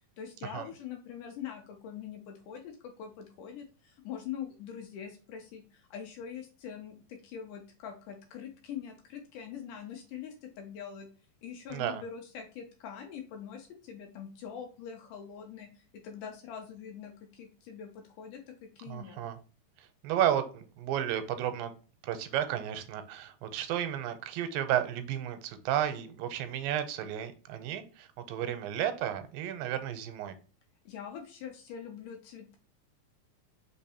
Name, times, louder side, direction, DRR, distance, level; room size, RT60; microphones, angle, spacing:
voice 1, 0.2-11.1 11.4-19.2 30.9-32.6, left 8 dB, 75° left, 4 dB, 2.3 m, -43 dB
voice 2, 11.7-12.0 18.9-19.4 19.8-21.7 22.0-30.4, right 10 dB, 85° right, 10 dB, 2.4 m, -33 dB
5.2 x 3.6 x 2.8 m, 0.36 s
omnidirectional pair, 4.1 m